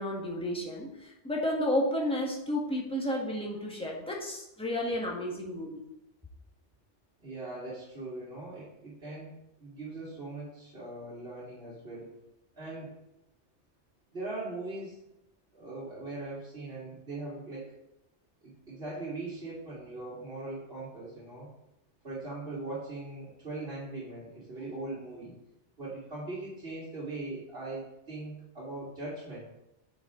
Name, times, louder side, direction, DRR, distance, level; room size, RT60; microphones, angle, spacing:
voice 1, 0.0-5.8, left 1 dB, 5° left, -3 dB, 1.4 m, -32 dB
voice 2, 7.2-12.1 12.6-12.9 14.1-15.0 15.5-17.7 18.4-21.5 22.0-25.4 25.8-29.4, right 2 dB, 55° right, -9 dB, 2.5 m, -40 dB
9.6 x 5.2 x 3.7 m, 0.86 s
omnidirectional pair, 1.2 m